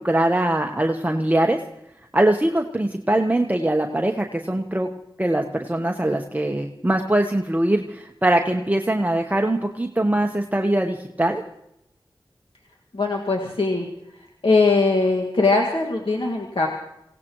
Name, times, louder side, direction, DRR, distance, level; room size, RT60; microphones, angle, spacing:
voice 1, 0.0-1.6 2.1-4.9 5.2-11.4, right 1 dB, 20° right, 3 dB, 1.0 m, -22 dB
voice 2, 12.9-13.9 14.1-16.7, left 3 dB, 75° left, 0 dB, 1.9 m, -21 dB
26.5 x 17.5 x 3.1 m, 0.81 s
wide cardioid pair, 50°, 9 cm